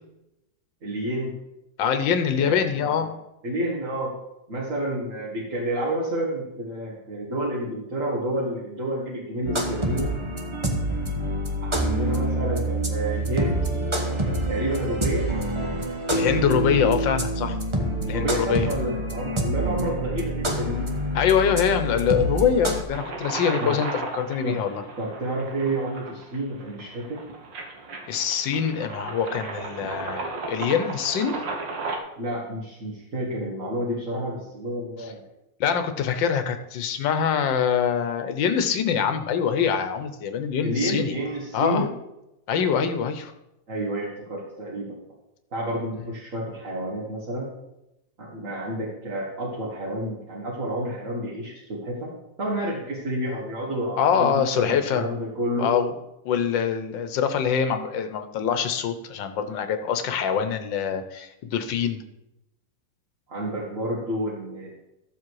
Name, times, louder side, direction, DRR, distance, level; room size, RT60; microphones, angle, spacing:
voice 1, 0.8-1.3 2.3-3.1 3.4-4.1 4.5-10.1 11.6-13.7 14.5-15.3 18.1-20.9 23.6-23.8 24.4-24.6 25.0-27.2 32.2-35.2 40.6-41.9 43.7-45.0 45.5-47.5 48.2-52.1 52.4-55.7 63.3-64.7, right 1 dB, 45° right, -4 dB, 2.1 m, -30 dB
voice 2, 1.8-3.1 16.1-17.6 18.1-18.7 21.1-24.8 28.1-31.4 35.6-41.1 41.5-41.9 42.5-43.3 54.0-55.1 55.6-55.9 56.2-62.0, left 7 dB, 80° left, 9 dB, 1.6 m, -24 dB
sound 1, 9.4-22.8, right 1 dB, 20° right, 1.0 m, -26 dB
sound 2, 22.9-32.0, right 3 dB, 80° right, 2.0 m, -35 dB
13.0 x 7.5 x 4.7 m, 0.90 s
omnidirectional pair, 2.0 m